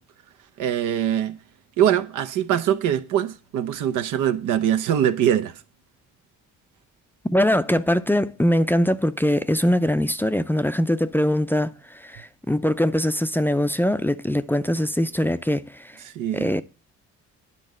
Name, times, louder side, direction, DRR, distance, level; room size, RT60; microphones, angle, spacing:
voice 1, 0.6-1.4 1.8-5.5 16.0-16.5, right 10 dB, 85° right, 0.9 m, -22 dB
voice 2, 7.2-16.0 16.3-16.6, left 1 dB, 5° left, 0.4 m, -22 dB
10.0 x 4.0 x 7.4 m
cardioid pair, 90°, 30 cm